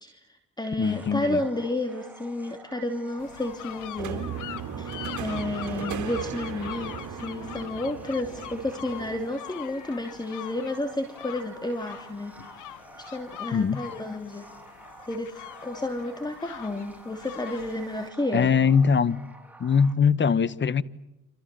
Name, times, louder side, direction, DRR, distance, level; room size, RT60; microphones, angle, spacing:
voice 1, 0.0-4.3 4.8-14.5 15.1-18.5, left 2 dB, 15° left, 3.0 m, -31 dB
voice 2, 0.8-1.4 13.5-13.8 18.3-19.2 19.6-20.8, left 6 dB, 40° left, 1.3 m, -22 dB
sound 1, 0.8-19.9, right 2 dB, 5° right, 4.3 m, -49 dB
sound 2, 3.2-18.1, left 13 dB, 85° left, 1.4 m, -43 dB
sound 3, 4.0-9.2, right 8 dB, 70° right, 2.9 m, -36 dB
29.0 x 26.5 x 7.7 m
cardioid pair, 90°, 30 cm